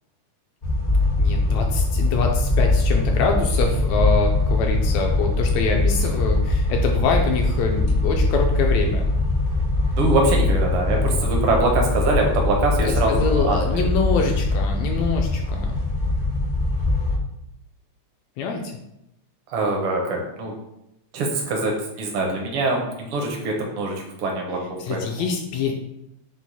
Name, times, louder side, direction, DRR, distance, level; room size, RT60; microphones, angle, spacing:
sound 1, 0.6-17.2, left 2 dB, 50° left, 0.6 m, -22 dB
voice 1, 1.2-9.1 12.8-15.8 18.4-18.8 24.8-25.7, left 4 dB, 80° left, 2 dB, 1.6 m, -25 dB
voice 2, 10.0-13.8 19.5-20.5 21.1-25.0, right 2 dB, 75° right, 1 dB, 1.3 m, -23 dB
6.2 x 2.1 x 4.1 m, 0.84 s
omnidirectional pair, 3.4 m